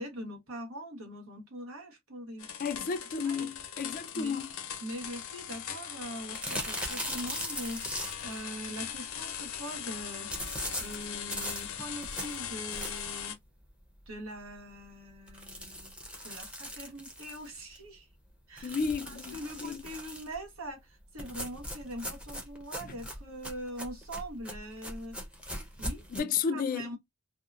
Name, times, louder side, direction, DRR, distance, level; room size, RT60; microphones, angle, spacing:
voice 1, 0.0-2.7 3.2-3.5 4.1-4.4 4.8-10.3 10.8-13.4 14.1-15.9 16.2-18.1 18.5-18.8 19.1-25.2 25.8-26.1 26.5-27.0, equal, 90° right, 1.2 m, -42 dB
sound 1, 2.4-13.3, left 8 dB, 85° left, 0.6 m, -40 dB
voice 2, 2.6-4.5 18.6-19.8 22.8-22.9 26.1-26.9, left 6 dB, 40° left, 0.3 m, -33 dB
bm chipcrunch, 6.3-8.4 10.3-13.2 13.7-13.8 14.1-14.2 14.5-14.6 15.3-17.8 18.6-20.4 21.2-26.2, equal, 5° right, 0.6 m, -39 dB
2.7 x 2.1 x 2.4 m
head